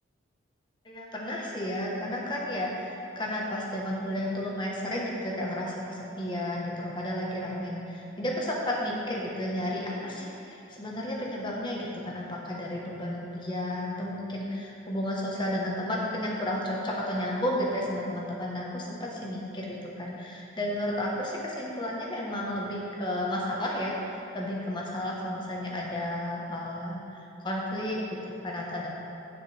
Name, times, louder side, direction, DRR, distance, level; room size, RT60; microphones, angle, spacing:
voice 1, 0.8-28.9, left 1 dB, 25° left, -3 dB, 1.1 m, -32 dB
9.8 x 6.6 x 3.3 m, 2.8 s
head